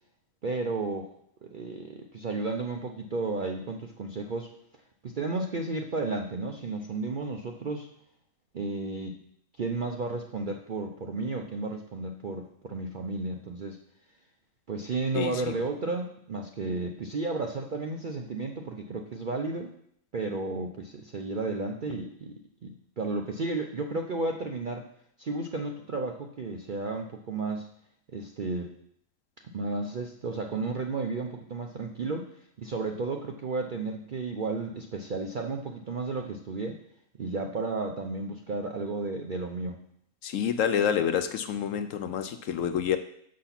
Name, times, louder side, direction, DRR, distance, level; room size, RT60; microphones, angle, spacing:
voice 1, 0.4-1.1 1.4-4.5 5.0-7.9 8.5-9.2 9.6-13.8 14.7-19.7 20.1-24.9 25.2-27.7 28.1-28.7 29.4-32.3 32.6-36.8 37.2-39.8, right 3 dB, 55° right, 3 dB, 0.5 m, -33 dB
voice 2, 15.1-15.6 40.2-43.0, left 8 dB, 70° left, 10 dB, 0.9 m, -28 dB
6.8 x 6.4 x 5.8 m, 0.69 s
omnidirectional pair, 1.5 m